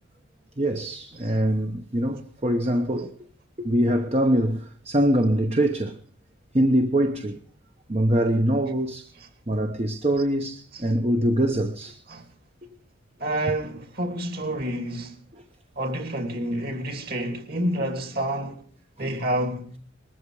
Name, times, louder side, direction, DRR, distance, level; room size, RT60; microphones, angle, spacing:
voice 1, 0.6-3.1 3.6-6.0 6.5-7.4 7.9-9.1 9.5-12.0 19.0-19.2, right 1 dB, 30° right, 1.0 m, -23 dB
voice 2, 13.2-15.2 15.8-18.6 19.0-19.7, right 1 dB, 45° right, 2.8 m, -28 dB
20.5 x 13.5 x 4.9 m
head